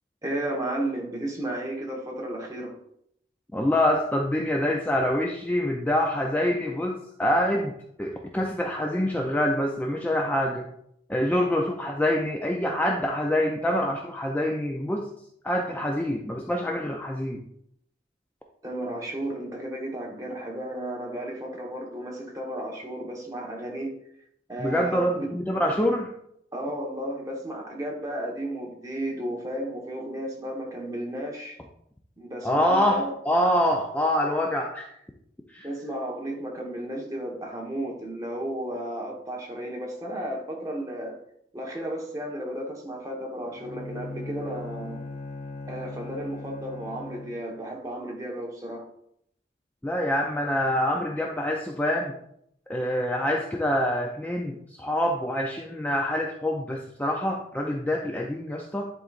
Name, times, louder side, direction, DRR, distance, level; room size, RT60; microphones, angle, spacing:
voice 1, 0.2-2.7 18.6-23.9 24.5-25.3 26.5-31.6 32.2-33.1 35.6-41.2 41.5-45.0 45.7-48.8, right 1 dB, 20° right, -1 dB, 1.1 m, -33 dB
voice 2, 3.5-10.7 11.1-15.1 15.4-17.4 24.6-26.1 32.4-34.9 35.5-35.7 49.8-52.1 52.7-58.9, left 1 dB, 10° left, 1 dB, 0.4 m, -26 dB
Bowed string instrument, 43.5-47.6, left 3 dB, 45° left, 0.7 m, -39 dB
10.5 x 3.9 x 2.4 m, 0.73 s
head